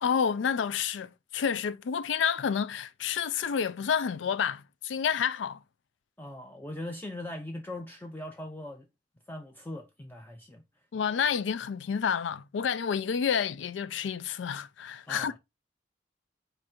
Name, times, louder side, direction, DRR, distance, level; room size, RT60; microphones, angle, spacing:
voice 1, 0.0-5.6 10.9-15.4, left 7 dB, 90° left, 0.4 m, -29 dB
voice 2, 6.2-8.9 9.3-10.6 15.1-15.4, left 1 dB, 10° left, 0.4 m, -40 dB
4.9 x 2.5 x 4.3 m
head